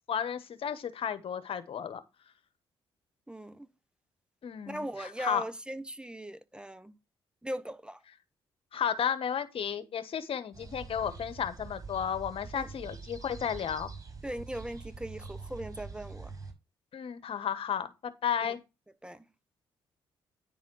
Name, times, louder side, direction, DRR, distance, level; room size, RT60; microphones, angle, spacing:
voice 1, 0.1-2.0 4.4-5.4 8.7-13.9 16.9-18.6, left 8 dB, 60° left, 1.3 m, -33 dB
voice 2, 3.3-3.7 4.7-6.9 7.4-8.0 12.5-12.7 14.2-16.3 18.4-18.5 19.0-19.3, right 1 dB, 10° right, 1.1 m, -39 dB
sound 1, 10.5-16.5, right 4 dB, 35° right, 5.9 m, -45 dB
10.0 x 4.2 x 6.3 m
supercardioid pair, 55°, 11 cm